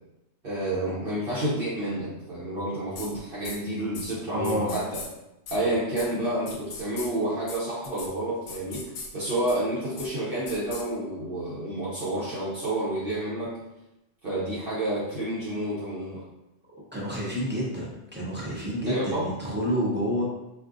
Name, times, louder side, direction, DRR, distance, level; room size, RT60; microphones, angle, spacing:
voice 1, 0.4-4.8 5.5-13.6 14.2-16.2 18.9-19.3, right 1 dB, 55° right, -8 dB, 0.9 m, -29 dB
sound 1, 3.0-3.1 3.4-3.6 3.9-4.1 4.4-5.1 5.5-5.6 6.0-6.1 6.5-7.1 7.5-7.6 7.8-8.1 8.5-9.1 9.5-9.6 10.0-10.1 10.5-10.8, left 4 dB, 80° left, 0.9 m, -38 dB
voice 2, 4.3-4.8 16.7-20.2, equal, 10° right, -6 dB, 0.6 m, -29 dB
3.5 x 2.5 x 2.5 m, 0.94 s
omnidirectional pair, 1.2 m